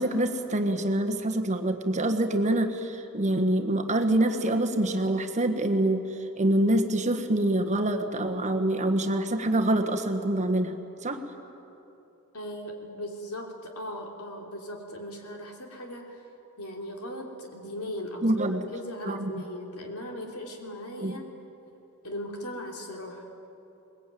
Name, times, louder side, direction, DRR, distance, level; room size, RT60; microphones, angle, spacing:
voice 1, 0.0-11.2 18.2-18.7 19.0-19.4 21.0-21.2, right 1 dB, 30° right, 5 dB, 1.4 m, -26 dB
voice 2, 12.3-16.2 16.6-21.2 22.0-23.2, left 1 dB, 80° left, 1 dB, 3.3 m, -38 dB
22.0 x 20.5 x 9.2 m, 2.9 s
head